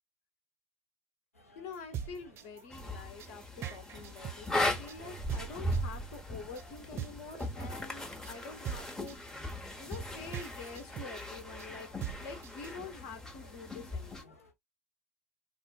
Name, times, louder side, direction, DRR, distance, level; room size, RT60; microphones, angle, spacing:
sound 1, 1.3-14.5, left 1 dB, 80° left, 0.9 m, -60 dB
voice 1, 1.5-9.4 9.7-14.4, left 4 dB, 55° left, 1.1 m, -47 dB
sound 2, 1.7-12.7, right 9 dB, 35° right, 0.5 m, -42 dB
sound 3, 2.7-14.2, left 1 dB, 5° left, 0.8 m, -38 dB
3.7 x 2.5 x 2.2 m
figure-of-eight pair, 75°, 8 cm